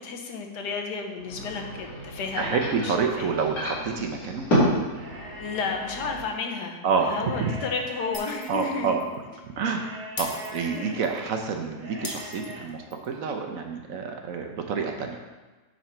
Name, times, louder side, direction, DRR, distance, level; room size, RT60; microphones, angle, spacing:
voice 1, 0.0-3.4 5.4-8.9 10.7-11.0, left 5 dB, 90° left, 3 dB, 1.5 m, -32 dB
sound 1, 1.2-6.2, equal, 60° left, 3.3 m, -30 dB
voice 2, 2.4-4.4 6.8-7.5 8.5-9.0 9.6-9.9 10.2-15.2, right 5 dB, 65° right, 3 dB, 1.0 m, -28 dB
sound 2, 4.9-6.2 7.1-8.8 9.7-10.9 11.7-12.6, right 1 dB, 45° right, 1.5 m, -42 dB
Shatter, 8.1-8.7 9.0-9.2 10.2-11.2 12.0-13.1, left 3 dB, 35° left, 0.9 m, -38 dB
9.3 x 3.9 x 4.4 m, 1.2 s
omnidirectional pair, 1.8 m